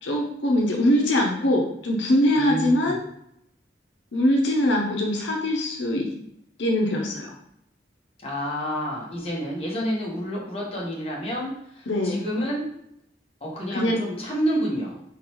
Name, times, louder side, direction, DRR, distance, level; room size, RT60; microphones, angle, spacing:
voice 1, 0.0-3.0 4.1-6.1 6.6-7.3 11.9-12.2 13.7-14.0, left 1 dB, 90° left, 0 dB, 0.8 m, -22 dB
voice 2, 2.3-3.0 8.2-12.6 13.4-15.0, equal, 30° left, -4 dB, 1.3 m, -29 dB
4.3 x 3.9 x 3.1 m, 0.76 s
head